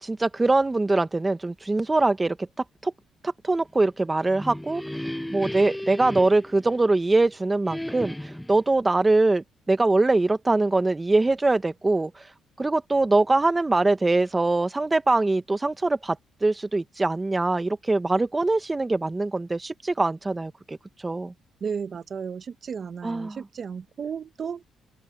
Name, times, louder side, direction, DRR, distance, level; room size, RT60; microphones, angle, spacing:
voice 1, 0.0-2.4 2.8-2.9 3.2-5.0 5.3-12.1 12.6-16.2 16.4-20.8 21.0-21.3 23.0-23.4, right 2 dB, 20° right, 1.4 m, -23 dB
sound 1, 4.2-7.2 7.7-8.6, left 1 dB, 5° left, 0.8 m, -35 dB
voice 2, 21.6-24.7, right 6 dB, 50° right, 1.1 m, -34 dB
cardioid pair, 90°, 0 cm